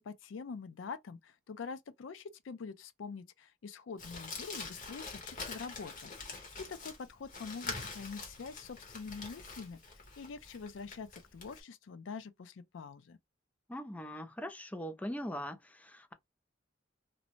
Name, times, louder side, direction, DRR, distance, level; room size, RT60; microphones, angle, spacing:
voice 1, 0.0-6.3 6.7-13.2, left 5 dB, 80° left, 0.4 m, -45 dB
Crumpling crinkling, 4.0-11.6, left 4 dB, 45° left, 1.0 m, -45 dB
voice 2, 13.7-16.1, equal, 10° left, 0.3 m, -41 dB
2.6 x 2.0 x 3.0 m
head